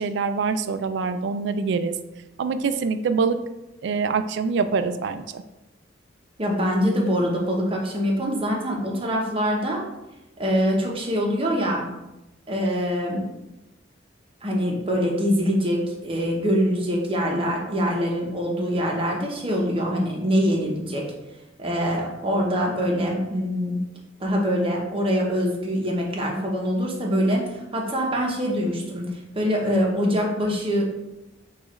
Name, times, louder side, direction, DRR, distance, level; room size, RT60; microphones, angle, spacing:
voice 1, 0.0-1.9 2.4-3.4 3.8-5.4, right 5 dB, 65° right, 10 dB, 0.3 m, -24 dB
voice 2, 6.4-9.8 10.4-11.9 12.5-13.2 14.4-21.1 21.6-23.8 24.2-30.8, equal, 30° right, -1 dB, 0.8 m, -24 dB
6.1 x 2.4 x 3.0 m, 0.96 s
head